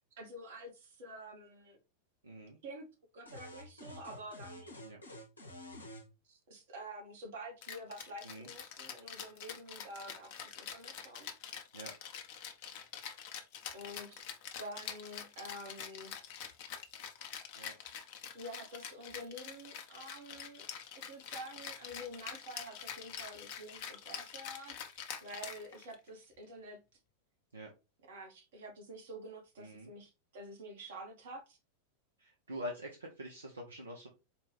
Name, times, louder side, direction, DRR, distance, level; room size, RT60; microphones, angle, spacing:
voice 1, 0.2-1.8 2.6-2.9 3.1-4.8 6.2-11.3 13.7-14.2 14.6-16.1 18.3-26.8 28.1-31.6, right 1 dB, 55° right, 1.0 m, -48 dB
voice 2, 2.2-2.6 4.8-5.0 8.2-8.5 11.7-11.9 17.5-17.7 27.5-27.7 29.6-29.9 32.2-34.1, equal, 75° right, 0.6 m, -45 dB
sound 1, 3.3-6.1, left 1 dB, 80° left, 0.8 m, -49 dB
Rattle (instrument), 7.6-26.1, left 8 dB, 45° left, 0.6 m, -46 dB
4.3 x 2.3 x 3.2 m
figure-of-eight pair, 90°, 0 cm